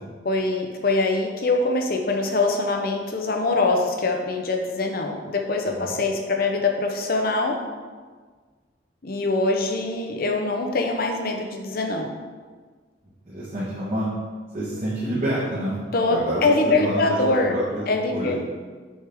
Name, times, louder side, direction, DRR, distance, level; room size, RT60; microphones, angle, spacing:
voice 1, 0.2-7.6 9.0-12.1 15.9-17.6 17.9-18.4, left 3 dB, 50° left, 2 dB, 0.7 m, -23 dB
voice 2, 13.3-14.1 14.5-15.8 16.1-18.4, right 1 dB, 40° right, -8 dB, 1.2 m, -28 dB
6.3 x 5.1 x 3.5 m, 1.5 s
head